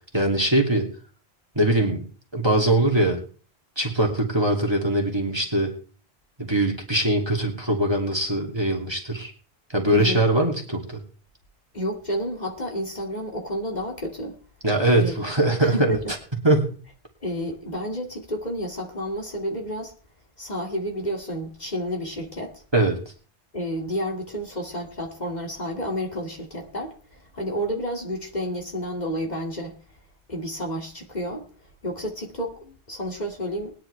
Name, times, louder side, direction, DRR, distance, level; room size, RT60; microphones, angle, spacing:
voice 1, 0.1-0.9 1.6-2.0 2.3-3.2 3.8-5.7 6.4-9.3 9.7-11.0 14.6-16.0 16.4-16.7 22.7-23.0, right 1 dB, 25° right, 2.6 m, -21 dB
voice 2, 9.9-10.2 11.7-14.4 14.9-15.1 15.6-16.0 17.2-19.9 20.4-22.6 23.5-29.8 30.3-31.5 31.8-33.7, equal, 45° left, 2.6 m, -30 dB
20.5 x 10.5 x 3.4 m
omnidirectional pair, 1.0 m